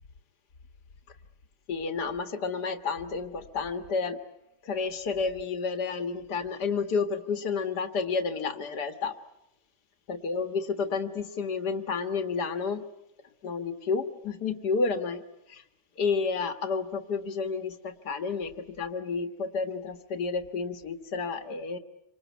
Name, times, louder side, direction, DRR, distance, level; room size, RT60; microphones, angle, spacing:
voice 1, 1.7-4.2 4.6-9.1 10.1-12.9 13.4-15.2 15.5-15.6 16.0-21.8, left 4 dB, 75° left, 9 dB, 2.2 m, -30 dB
28.5 x 25.5 x 8.2 m, 0.84 s
omnidirectional pair, 1.8 m